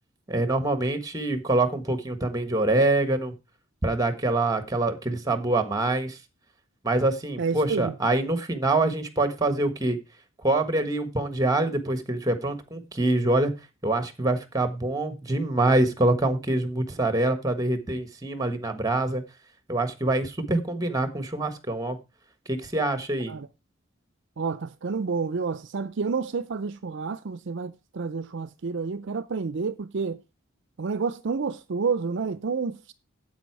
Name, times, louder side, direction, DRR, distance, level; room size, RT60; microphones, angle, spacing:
voice 1, 0.3-3.3 3.8-6.2 6.8-10.0 10.4-13.5 13.8-19.2 19.7-22.0 22.5-23.4, right 2 dB, 15° right, 1.4 m, -25 dB
voice 2, 7.4-8.0 23.3-23.5 24.4-30.2 30.8-32.9, right 5 dB, 60° right, 0.5 m, -29 dB
9.4 x 8.3 x 4.6 m
head